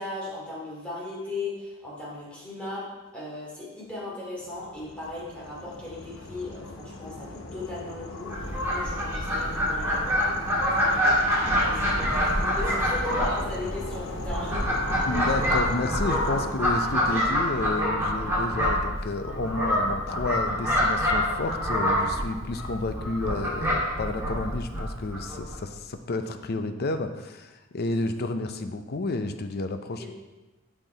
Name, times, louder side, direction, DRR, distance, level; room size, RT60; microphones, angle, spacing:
voice 1, 0.0-2.9 3.1-15.1 16.1-16.4 30.0-30.1, left 2 dB, 5° left, -7 dB, 2.7 m, -38 dB
sound 1, 4.4-16.5, left 2 dB, 75° left, 0.9 m, -39 dB
Fowl, 8.2-25.6, equal, 10° right, 2.1 m, -26 dB
voice 2, 15.1-30.1, left 2 dB, 50° left, 8 dB, 0.6 m, -31 dB
8.5 x 5.9 x 3.9 m, 1.2 s
head